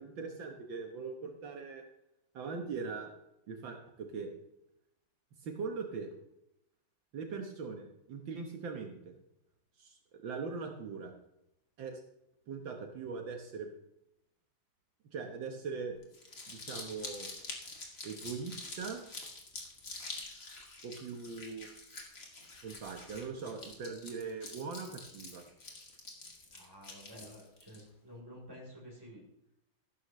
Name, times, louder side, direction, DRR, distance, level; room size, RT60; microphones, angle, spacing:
voice 1, 0.0-1.8 2.3-3.1 3.5-4.3 5.4-6.1 7.1-9.2 9.8-11.1 11.8-12.0 12.5-13.7 15.1-16.0 16.5-17.3 18.0-19.0 20.8-21.7 22.6-25.5, right 5 dB, 75° right, 3 dB, 1.9 m, -41 dB
Crumpling crinkling, 16.0-27.8, left 3 dB, 40° left, 2.6 m, -46 dB
voice 2, 26.5-29.2, equal, 10° right, -2 dB, 3.9 m, -51 dB
14.5 x 12.0 x 3.2 m, 0.85 s
omnidirectional pair, 2.2 m